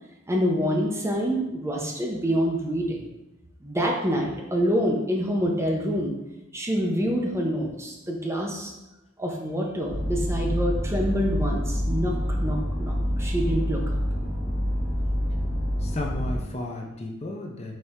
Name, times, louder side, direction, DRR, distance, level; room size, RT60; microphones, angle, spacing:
voice 1, 0.3-3.0 3.6-6.1 6.5-8.7 9.2-12.1 12.4-14.0, equal, 15° right, -1 dB, 0.6 m, -26 dB
sound 1, 9.9-16.4, equal, 75° left, 1.5 m, -27 dB
voice 2, 15.5-17.8, left 2 dB, 35° left, 1 dB, 0.5 m, -34 dB
4.3 x 3.3 x 3.6 m, 0.93 s
head